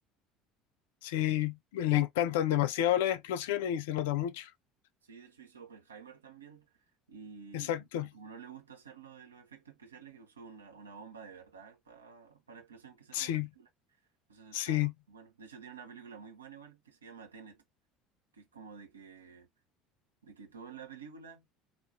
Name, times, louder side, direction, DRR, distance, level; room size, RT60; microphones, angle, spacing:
voice 1, 1.0-4.5 7.5-8.1 13.1-13.5 14.5-14.9, left 12 dB, 65° left, 0.4 m, -30 dB
voice 2, 5.0-6.7 7.1-13.7 14.3-17.6 18.3-19.5 20.2-21.5, right 6 dB, 80° right, 0.8 m, -51 dB
3.7 x 2.3 x 2.6 m
figure-of-eight pair, 65°, 0 cm